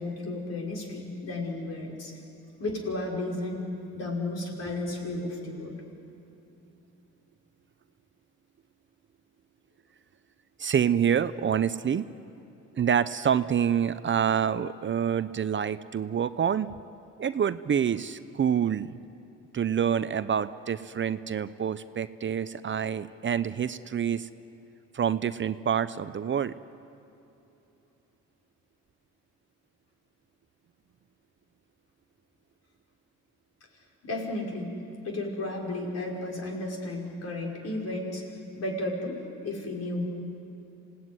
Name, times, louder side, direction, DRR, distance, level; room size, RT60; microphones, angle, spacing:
voice 1, 0.0-2.1 2.6-3.7 3.9-5.8 34.0-34.7 35.0-38.2 38.5-40.1, left 2 dB, 55° left, -1 dB, 5.6 m, -33 dB
voice 2, 10.6-12.1 12.8-16.7 17.2-19.0 19.5-24.3 24.9-26.5, right 8 dB, 40° right, 13 dB, 0.7 m, -27 dB
26.5 x 17.5 x 9.7 m, 2.9 s
cardioid pair, 90°, 30 cm